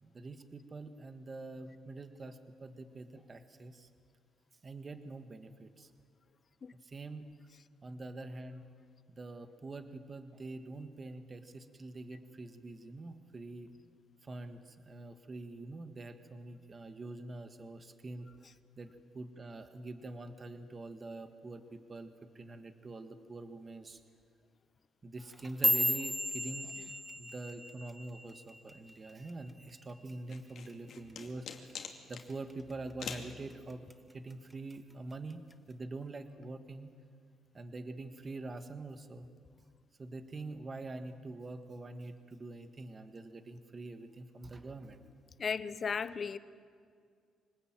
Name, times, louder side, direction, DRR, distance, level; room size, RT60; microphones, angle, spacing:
voice 1, 0.0-3.9 4.6-5.9 6.8-7.3 7.8-8.6 9.1-13.7 14.2-18.3 18.8-24.0 25.0-26.8 27.2-31.7 32.1-35.4 35.7-36.9 37.5-39.3 40.0-45.1, right 2 dB, 35° right, 8 dB, 1.7 m, -45 dB
sound 1, 25.2-29.6 29.9-30.3 30.7-31.1 31.5-31.7 32.3-32.7 33.1-33.9 34.3-34.7 35.5-35.6, equal, 5° right, 1.5 m, -34 dB
sound 2, 30.3-32.3 33.0-33.3, left 7 dB, 65° left, 2.6 m, -43 dB
voice 2, 45.4-46.4, left 6 dB, 45° left, 15 dB, 1.0 m, -35 dB
25.0 x 19.5 x 9.1 m, 2.2 s
cardioid pair, 90°, 0 cm